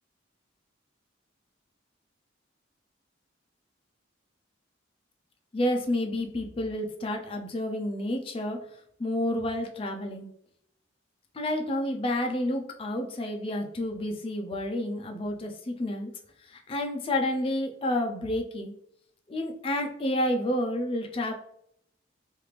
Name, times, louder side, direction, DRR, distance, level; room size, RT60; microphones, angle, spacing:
voice 1, 5.5-8.6 9.0-10.3 11.3-16.1 16.5-18.7 19.3-21.3, left 1 dB, 30° left, 3 dB, 0.4 m, -30 dB
3.1 x 2.4 x 3.3 m, 0.72 s
head